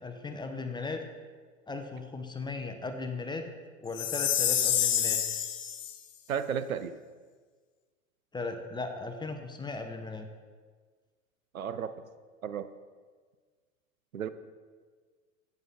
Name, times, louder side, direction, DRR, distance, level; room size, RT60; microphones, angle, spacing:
voice 1, 0.0-1.0 1.7-3.5 3.8-5.2 8.3-10.3, left 3 dB, 10° left, 5 dB, 0.9 m, -37 dB
Chime, 3.9-5.9, left 10 dB, 65° left, 1.2 m, -28 dB
voice 2, 6.3-7.0 11.5-12.0 12.4-12.7 14.1-14.3, right 7 dB, 85° right, 12 dB, 0.7 m, -33 dB
12.0 x 8.4 x 4.3 m, 1.5 s
hypercardioid pair, 95°, 40 cm